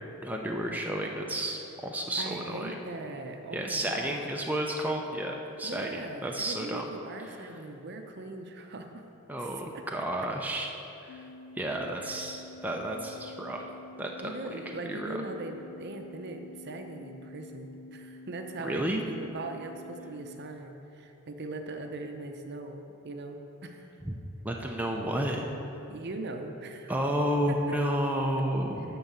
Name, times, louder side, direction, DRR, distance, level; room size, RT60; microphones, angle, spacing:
voice 1, 0.2-2.7 3.5-5.9 6.2-6.9 7.2-7.4 9.3-10.8 11.0-11.3 11.6-13.7 14.0-14.1 14.5-15.2 18.6-19.1 24.1-24.2 24.4-25.5 26.9-29.0, right 1 dB, 10° right, 0 dB, 0.5 m, -31 dB
voice 2, 2.2-4.2 5.6-9.0 9.3-9.5 9.7-9.8 12.0-12.2 14.2-23.9 25.9-26.9 27.5-27.8, right 2 dB, 50° right, 5 dB, 0.7 m, -40 dB
sound 1, 11.1-20.4, left 2 dB, 75° left, 0.5 m, -49 dB
11.0 x 3.9 x 7.3 m, 3.0 s
head